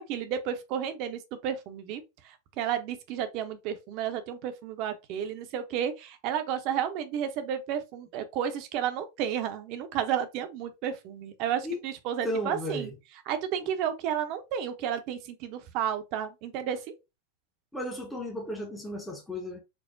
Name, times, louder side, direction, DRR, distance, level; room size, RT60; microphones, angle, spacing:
voice 1, 0.0-12.9 13.3-16.8, right 9 dB, 40° right, 0.6 m, -32 dB
voice 2, 12.2-12.9 17.7-19.6, left 1 dB, 5° left, 0.7 m, -34 dB
4.5 x 2.1 x 2.5 m
figure-of-eight pair, 90°, 0 cm